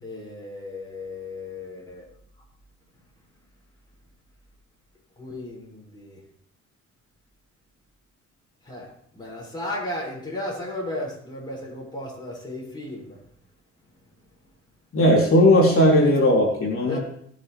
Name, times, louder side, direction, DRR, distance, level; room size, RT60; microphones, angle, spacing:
voice 1, 0.0-2.0 5.2-6.2 8.6-13.2 16.9-17.0, left 1 dB, 15° left, -5 dB, 6.2 m, -35 dB
voice 2, 14.9-17.0, left 1 dB, 45° left, -2 dB, 3.6 m, -17 dB
20.5 x 7.4 x 3.5 m, 0.67 s
cardioid pair, 90°, 30 cm